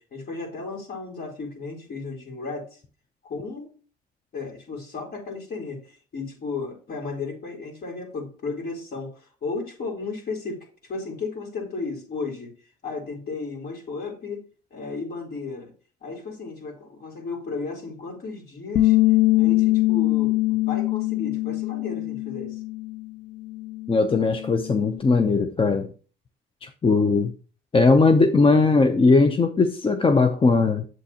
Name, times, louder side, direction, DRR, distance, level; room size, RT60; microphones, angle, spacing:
voice 1, 0.0-2.8 3.2-3.7 4.3-12.5 12.8-14.4 14.7-15.7 16.0-19.0 19.3-22.6, left 4 dB, 50° left, 4.0 m, -34 dB
Bass guitar, 18.8-23.1 23.4-25.0, left 18 dB, 65° left, 0.6 m, -23 dB
voice 2, 23.9-25.9 26.6-27.3 27.7-30.8, left 3 dB, 25° left, 0.7 m, -19 dB
8.1 x 7.6 x 2.9 m
supercardioid pair, 80°, 21 cm